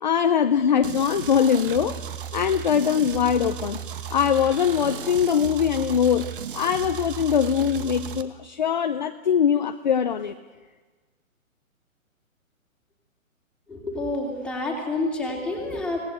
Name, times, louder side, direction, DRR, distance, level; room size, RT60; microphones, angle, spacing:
voice 1, 0.0-2.0 2.3-3.8 4.1-6.3 6.5-10.3, left 8 dB, 35° left, 8 dB, 0.6 m, -22 dB
sound 1, 0.8-8.2, right 8 dB, 40° right, 1.4 m, -35 dB
voice 2, 13.7-16.0, left 2 dB, ahead, -2 dB, 2.7 m, -28 dB
24.5 x 18.5 x 8.1 m, 1.3 s
hypercardioid pair, 165°, 41 cm